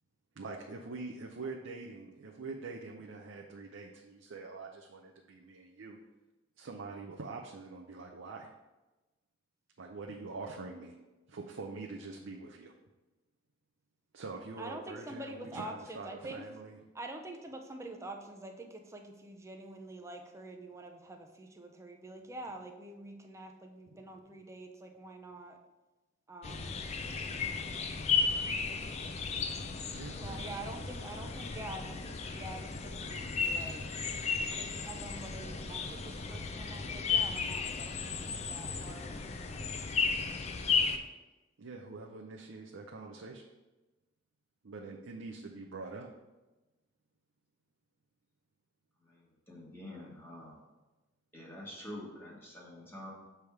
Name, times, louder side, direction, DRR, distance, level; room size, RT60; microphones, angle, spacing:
voice 1, 0.4-6.0 6.6-8.5 9.8-10.9 11.3-12.7 14.1-16.8 23.9-24.0 29.9-30.5 41.6-43.4 44.6-46.1, right 3 dB, 75° right, 0 dB, 0.6 m, -44 dB
voice 2, 14.6-16.4 16.9-25.6 26.3-26.7 30.2-33.8 34.5-39.2, right 2 dB, 15° right, 4 dB, 0.6 m, -46 dB
sound 1, 26.4-41.0, left 5 dB, 35° left, 0.4 m, -34 dB
voice 3, 49.0-50.6 51.3-53.1, left 1 dB, 10° left, -5 dB, 1.3 m, -47 dB
7.0 x 3.4 x 4.6 m, 1.1 s
head